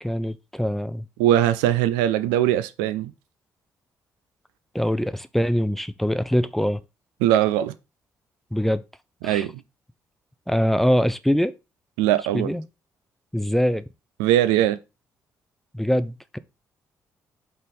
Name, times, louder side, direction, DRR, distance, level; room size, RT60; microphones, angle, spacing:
voice 1, 0.0-1.0 4.7-6.8 8.5-8.8 9.2-9.5 10.5-11.5 12.3-12.6 13.3-13.8 15.7-16.4, equal, 5° left, 0.5 m, -23 dB
voice 2, 1.2-3.1 7.2-7.7 9.2-9.5 12.0-12.5 14.2-14.8, right 12 dB, 65° right, 0.4 m, -20 dB
5.5 x 4.0 x 5.0 m
figure-of-eight pair, 40°, 9 cm